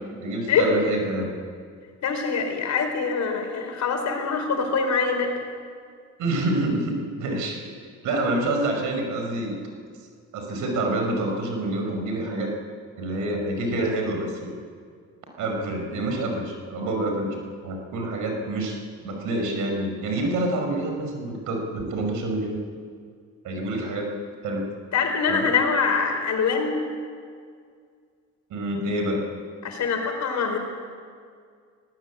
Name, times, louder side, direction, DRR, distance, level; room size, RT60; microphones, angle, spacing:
voice 1, 0.2-1.3 6.2-7.6 8.0-9.6 10.3-12.5 13.0-14.5 15.4-22.6 23.4-24.1 24.4-24.7 25.3-25.5 28.5-29.2, right 1 dB, 85° right, 3 dB, 5.2 m, -27 dB
voice 2, 2.0-5.3 24.9-26.8 29.6-30.6, left 5 dB, 65° left, 4 dB, 4.7 m, -24 dB
20.5 x 18.0 x 8.5 m, 2.1 s
cardioid pair, 90°, 30 cm